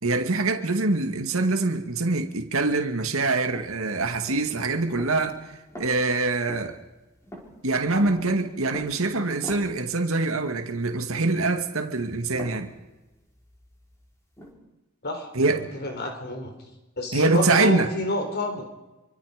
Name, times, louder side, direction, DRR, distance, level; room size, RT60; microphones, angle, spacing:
voice 1, 0.0-5.4 5.8-6.8 7.6-12.7 15.3-15.7 17.1-17.9, right 3 dB, 75° right, 2.2 m, -24 dB
sound 1, 3.5-10.1 12.3-14.5, equal, 15° left, 5.5 m, -44 dB
voice 2, 15.0-16.5 17.0-18.6, left 2 dB, 50° left, 3.9 m, -29 dB
27.0 x 25.0 x 5.2 m
head